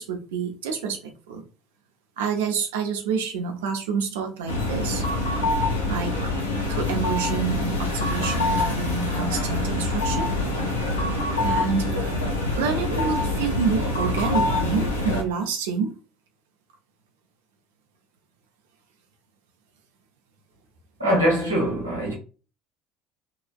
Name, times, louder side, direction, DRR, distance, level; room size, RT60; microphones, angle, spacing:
voice 1, 0.0-1.4 2.2-5.0 5.8-6.2 6.7-10.3 11.4-12.2 12.6-15.9, right 5 dB, 70° right, 0.6 m, -28 dB
sound 1, 4.5-15.2, left 2 dB, 85° left, 0.5 m, -25 dB
voice 2, 21.0-22.1, equal, 85° right, 1.0 m, -22 dB
2.8 x 2.4 x 2.3 m
figure-of-eight pair, 60°, 0 cm